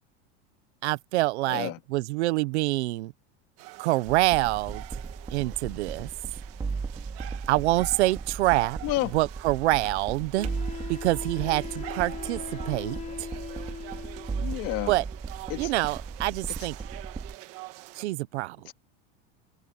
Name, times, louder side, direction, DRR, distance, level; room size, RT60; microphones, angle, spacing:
voice 1, 0.8-3.1 3.8-4.8 5.3-6.1 7.5-8.8 9.1-10.5 10.9-13.0 14.9-15.0 15.6-16.8 18.0-18.6, right 19 dB, 85° right, 1.2 m, -26 dB
voice 2, 1.5-1.8 8.8-9.1 14.4-14.9 15.5-15.7, left 19 dB, 45° left, 2.7 m, -30 dB
sound 1, 3.6-18.0, right 18 dB, 45° right, 1.7 m, -46 dB
sound 2, 4.1-17.4, right 4 dB, 15° right, 3.3 m, -37 dB
Wind instrument woodwind instrument, 9.1-9.2 10.4-14.4, left 7 dB, 20° left, 3.4 m, -40 dB
supercardioid pair, 160°, 33 cm